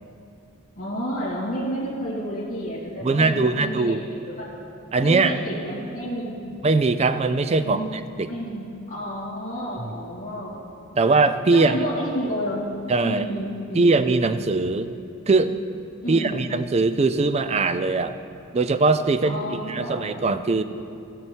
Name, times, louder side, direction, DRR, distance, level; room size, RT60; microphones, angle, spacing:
voice 1, 0.8-4.5 5.0-6.4 7.6-7.8 8.2-10.6 10.9-11.1 11.5-12.7 13.0-13.9 16.0-16.4 19.2-20.0, equal, 35° left, -8 dB, 2.4 m, -30 dB
voice 2, 3.0-4.0 4.9-5.4 6.6-8.3 9.8-9.9 11.0-11.8 12.9-13.2 13.7-14.9 15.3-15.5 16.1-18.1 18.5-20.6, right 3 dB, 30° right, 11 dB, 0.4 m, -21 dB
16.5 x 6.8 x 4.5 m, 2.6 s
head